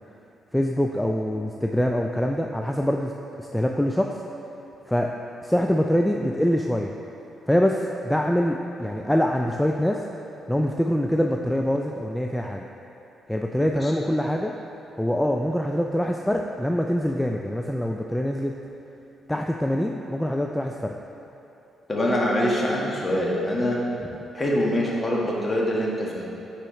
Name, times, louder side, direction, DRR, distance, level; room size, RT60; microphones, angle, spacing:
voice 1, 0.5-4.2 4.9-5.1 5.4-6.9 7.5-10.0 10.5-12.7 13.3-14.5 15.0-18.6 19.3-21.0, equal, 5° left, 2 dB, 0.3 m, -24 dB
voice 2, 21.9-23.8 24.3-26.3, left 1 dB, 30° left, -3 dB, 1.4 m, -24 dB
9.5 x 4.4 x 3.1 m, 3.0 s
supercardioid pair, 65°, 0 cm